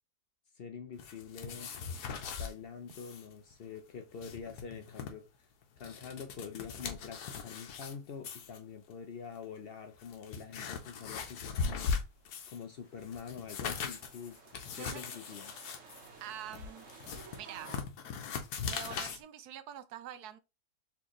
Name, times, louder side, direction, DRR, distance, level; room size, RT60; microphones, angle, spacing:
voice 1, 0.6-1.7 2.4-5.2 5.8-11.9 12.5-14.4 14.7-15.6, left 6 dB, 60° left, 0.6 m, -45 dB
sound 1, 1.0-2.5 2.9-3.3 3.5-3.6 4.0-5.1 5.6-7.9 8.2-8.6 9.4-9.5 9.9-12.6 13.0-19.2, left 6 dB, 90° left, 1.3 m, -39 dB
sound 2, 12.3-17.8, right 5 dB, 55° right, 1.2 m, -55 dB
voice 2, 14.8-15.2 16.2-16.9 17.3-17.8 18.6-20.4, right 10 dB, 85° right, 1.1 m, -45 dB
4.3 x 3.4 x 3.0 m
omnidirectional pair, 1.6 m